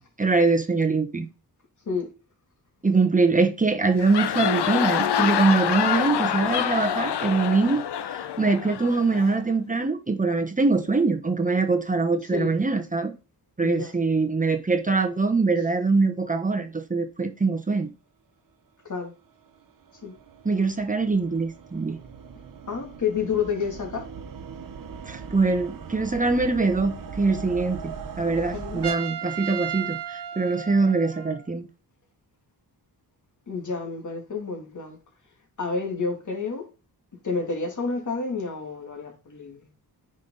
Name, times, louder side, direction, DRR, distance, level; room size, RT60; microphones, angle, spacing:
voice 1, 0.2-1.3 2.8-7.8 8.1-13.1 13.6-17.9 20.4-22.0 25.1-31.6, right 3 dB, 20° right, 1.1 m, -23 dB
sound 1, 3.9-9.4, left 9 dB, 80° left, 0.8 m, -26 dB
voice 2, 13.6-13.9 18.8-19.1 20.0-20.1 22.7-24.0 28.5-28.8 33.5-35.0 35.6-36.7 37.2-39.7, left 5 dB, 45° left, 2.8 m, -29 dB
sound 2, 19.2-28.9, right 6 dB, 55° right, 1.1 m, -40 dB
Trumpet, 28.8-31.5, right 9 dB, 85° right, 1.6 m, -34 dB
9.8 x 5.3 x 4.0 m
wide cardioid pair, 115°, 40 cm